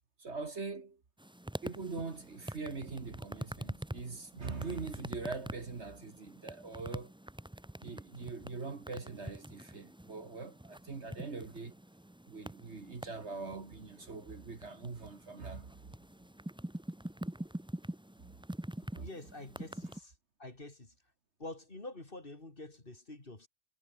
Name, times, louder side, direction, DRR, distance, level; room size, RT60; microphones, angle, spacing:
voice 1, 0.2-1.0 1.6-7.1 7.8-11.7 12.3-15.7 18.9-19.1, right 4 dB, 50° right, 2.1 m, -42 dB
sound 1, 1.2-20.0, right 1 dB, 5° right, 0.5 m, -45 dB
voice 2, 19.0-20.1 20.4-20.9 21.4-23.5, left 2 dB, 35° left, 3.6 m, -47 dB
omnidirectional pair, 1.6 m